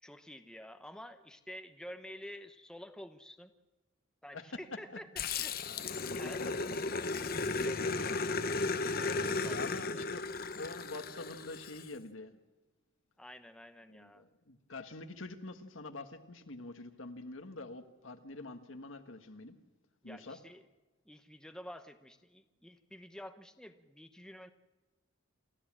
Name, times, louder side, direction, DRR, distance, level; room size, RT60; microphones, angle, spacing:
voice 1, 0.0-3.5 4.2-5.6 6.2-6.4 8.6-10.0 13.2-14.3 20.0-20.6 21.0-24.5, equal, 5° left, 7 dB, 0.9 m, -50 dB
Growling, 5.2-11.8, left 3 dB, 45° left, 0.9 m, -35 dB
voice 2, 5.7-6.5 7.5-8.2 9.5-10.2 10.5-12.4 13.9-19.6 20.0-20.4, left 2 dB, 80° left, 7 dB, 1.6 m, -46 dB
28.0 x 13.0 x 7.5 m, 1.2 s
head